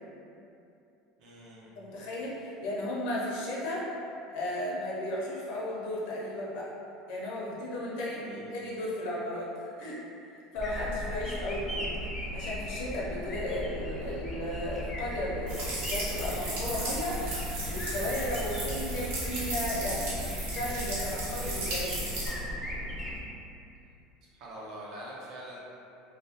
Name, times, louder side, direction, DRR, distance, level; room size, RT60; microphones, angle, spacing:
voice 1, 1.2-1.7 8.2-8.6 11.2-11.6 13.4-13.6 24.3-25.6, right 1 dB, 55° right, -5 dB, 0.6 m, -45 dB
voice 2, 1.8-3.9 4.3-6.7 7.1-9.5 9.8-11.9 12.3-17.2 17.7-20.1 20.5-22.1, left 1 dB, 65° left, -5 dB, 0.6 m, -35 dB
sound 1, 10.5-23.2, equal, 15° left, 0.4 m, -37 dB
sound 2, 15.5-22.3, right 1 dB, 85° right, 0.9 m, -35 dB
2.3 x 2.2 x 2.8 m, 2.7 s
cardioid pair, 150°, 0 cm